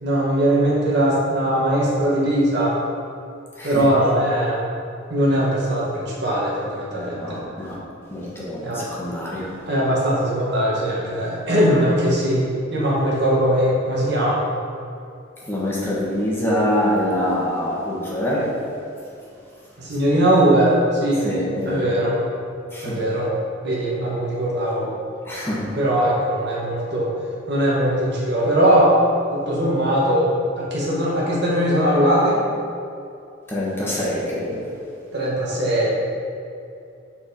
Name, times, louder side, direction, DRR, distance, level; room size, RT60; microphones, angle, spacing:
voice 1, 0.0-2.8 3.6-4.6 5.1-7.4 8.6-8.8 9.7-14.4 19.8-21.2 21.7-22.2 22.8-23.3 23.6-24.9 25.8-27.1 27.5-29.0 29.3-32.4 35.1-35.9, right 1 dB, 60° right, -6 dB, 1.7 m, -20 dB
voice 2, 6.9-7.8 8.1-9.5 15.5-18.4 21.2-21.8 22.7-23.0 25.3-25.6 33.5-34.6, left 1 dB, 10° left, -7 dB, 1.4 m, -25 dB
7.6 x 4.4 x 4.4 m, 2.6 s
head